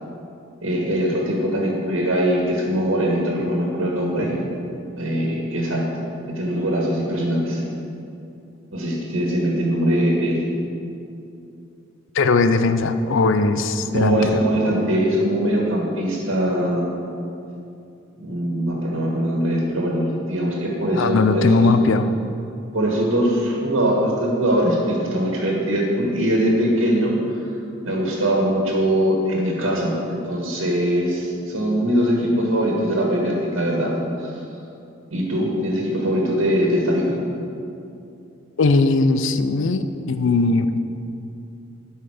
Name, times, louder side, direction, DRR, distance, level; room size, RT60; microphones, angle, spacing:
voice 1, 0.6-4.3 5.0-5.9 6.2-7.6 8.7-10.5 13.8-16.9 18.2-21.7 22.7-27.4 27.8-33.9 34.2-34.4 35.1-37.1, equal, 80° right, -2 dB, 1.7 m, -22 dB
voice 2, 12.1-14.4 20.9-22.1 38.6-40.8, left 3 dB, 65° left, 10 dB, 0.5 m, -19 dB
12.0 x 5.7 x 5.0 m, 2.7 s
head